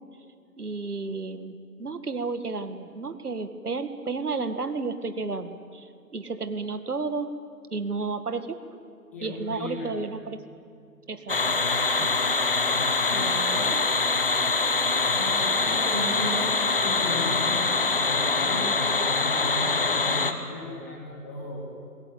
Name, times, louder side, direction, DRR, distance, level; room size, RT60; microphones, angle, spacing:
voice 1, 0.6-7.3 7.7-8.8 9.2-10.4 11.1-12.1 13.1-13.9, right 4 dB, 65° right, 9 dB, 2.2 m, -33 dB
voice 2, 9.1-10.0 12.6-13.3 15.2-16.5 16.8-17.6 17.9-18.7 19.2-21.6, left 2 dB, 10° left, -3 dB, 1.6 m, -36 dB
sound 1, 11.3-20.3, left 3 dB, 35° left, 1.2 m, -24 dB
27.5 x 21.5 x 8.7 m, 2.2 s
figure-of-eight pair, 165°, 49 cm